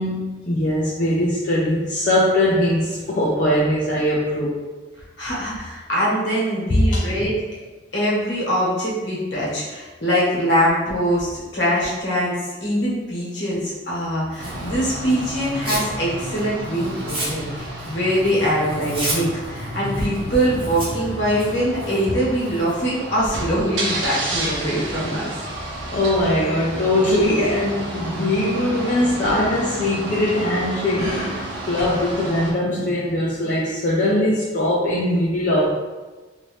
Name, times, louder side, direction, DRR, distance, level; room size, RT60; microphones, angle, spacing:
voice 1, 0.0-4.6 6.9-7.0 25.9-35.7, left 1 dB, 45° left, -6 dB, 0.5 m, -21 dB
voice 2, 5.2-7.3 7.9-25.4, equal, 70° left, -7 dB, 1.2 m, -23 dB
Tearing, 14.3-15.9 16.3-22.8, right 1 dB, 30° right, 1.1 m, -33 dB
sound 1, 14.4-32.5, right 1 dB, 90° right, 0.8 m, -31 dB
3.0 x 2.7 x 3.1 m, 1.2 s
head